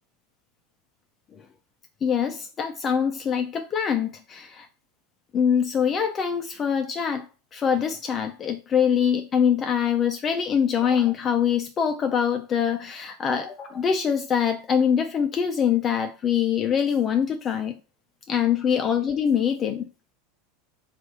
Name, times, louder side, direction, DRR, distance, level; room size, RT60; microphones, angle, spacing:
voice 1, 2.0-4.7 5.3-17.8 18.3-19.9, left 7 dB, 30° left, 0.5 m, -24 dB
4.0 x 2.5 x 4.4 m
supercardioid pair, 115°, 0 cm